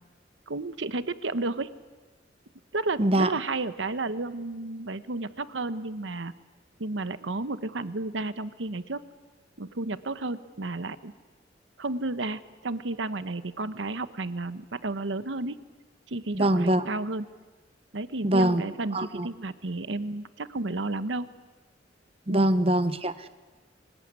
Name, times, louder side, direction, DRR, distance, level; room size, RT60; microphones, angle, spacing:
voice 1, 0.5-1.7 2.7-6.3 6.8-9.0 9.6-11.1 11.8-15.6 16.1-17.3 17.9-21.3 22.3-22.5, right 2 dB, 90° right, 13 dB, 1.0 m, -32 dB
voice 2, 3.0-3.3 16.3-16.8 18.2-18.6 18.9-19.3 22.3-23.3, right 1 dB, 30° right, 11 dB, 1.0 m, -23 dB
25.0 x 20.5 x 9.7 m, 1.3 s
head